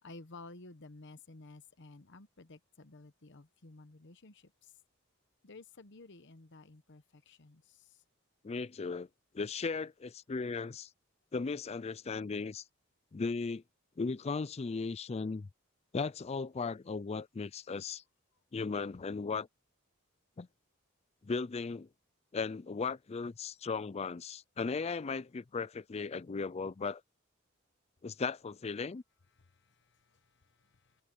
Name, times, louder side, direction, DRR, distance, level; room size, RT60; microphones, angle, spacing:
voice 1, 0.0-4.7 5.4-8.0 29.4-31.0, left 3 dB, 60° left, 1.1 m, -54 dB
voice 2, 8.4-9.1 9.3-10.9 11.3-12.6 13.1-13.6 14.0-15.5 15.9-18.0 18.5-19.5 20.4-20.5 21.2-21.9 22.3-27.0 28.0-29.0, left 4 dB, 30° left, 0.4 m, -36 dB
head